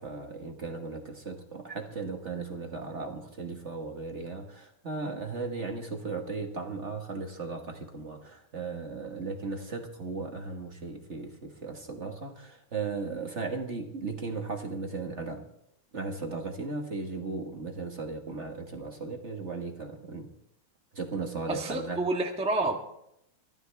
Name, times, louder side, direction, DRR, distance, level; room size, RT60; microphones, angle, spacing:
voice 1, 0.0-15.5 15.9-20.3 20.9-22.0, right 4 dB, 35° right, 3 dB, 1.7 m, -36 dB
voice 2, 21.5-22.7, right 2 dB, 5° right, 2 dB, 1.2 m, -28 dB
23.5 x 15.0 x 3.5 m, 0.79 s
omnidirectional pair, 2.2 m